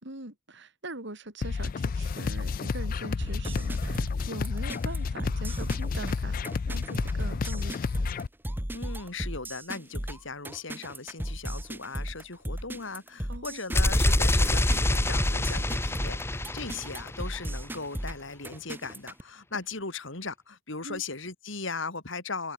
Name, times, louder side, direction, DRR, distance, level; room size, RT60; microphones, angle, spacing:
voice 1, 0.0-7.8 13.3-13.6 20.8-21.0, right 2 dB, 60° right, 3.8 m, -42 dB
sound 1, 1.4-8.3, left 5 dB, 45° left, 0.4 m, -31 dB
sound 2, 3.2-19.2, right 1 dB, 10° right, 1.5 m, -36 dB
voice 2, 8.7-22.5, left 4 dB, 65° left, 3.4 m, -38 dB
sound 3, 13.7-17.6, left 1 dB, 10° left, 1.0 m, -25 dB
head